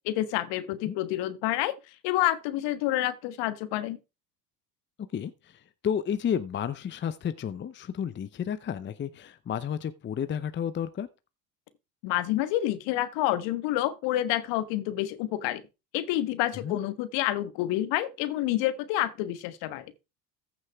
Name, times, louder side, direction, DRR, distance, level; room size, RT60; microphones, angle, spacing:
voice 1, 0.0-1.7 2.0-4.0 12.0-15.6 15.9-19.9, left 14 dB, 60° left, 1.5 m, -28 dB
voice 2, 5.1-11.1 16.6-16.8, left 8 dB, 25° left, 0.7 m, -32 dB
14.5 x 6.3 x 3.5 m
hypercardioid pair, 80°, 48 cm